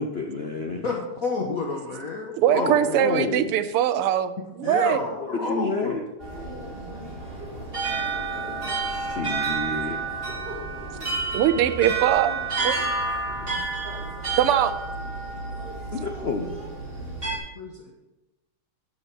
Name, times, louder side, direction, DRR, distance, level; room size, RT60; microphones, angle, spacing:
voice 1, 0.0-0.8 2.5-3.5 5.0-6.0 8.3-8.6 8.9-10.0 15.9-16.5, left 3 dB, 85° left, 3 dB, 0.5 m, -30 dB
voice 2, 0.8-3.3 4.6-6.0 17.5-17.9, left 3 dB, 45° left, -1 dB, 1.5 m, -30 dB
voice 3, 2.4-4.3 4.6-5.0 11.3-12.3 12.6-12.8 14.4-14.7, right 11 dB, 85° right, 12 dB, 1.6 m, -21 dB
sound 1, 6.2-17.4, right 4 dB, 25° right, 2.3 m, -30 dB
11.5 x 6.4 x 6.1 m, 1.0 s
omnidirectional pair, 2.4 m